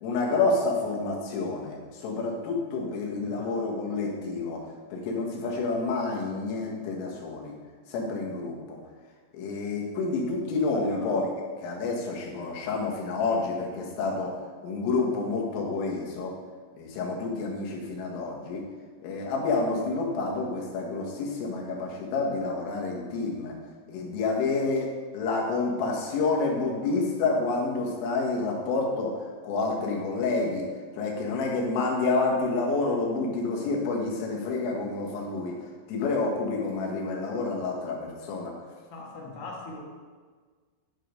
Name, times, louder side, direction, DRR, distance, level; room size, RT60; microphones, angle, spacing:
voice 1, 0.0-4.6 4.9-7.5 7.9-8.8 9.3-11.3 11.6-14.4 14.6-16.3 16.8-18.6 19.0-23.5 23.9-29.2 29.4-30.6 31.0-35.6 35.9-38.5, left 3 dB, 80° left, -2 dB, 4.0 m, -29 dB
voice 2, 3.2-3.5 10.9-11.2 38.9-39.8, left 3 dB, 65° left, -2 dB, 2.6 m, -41 dB
11.5 x 5.0 x 5.2 m, 1.5 s
omnidirectional pair, 5.9 m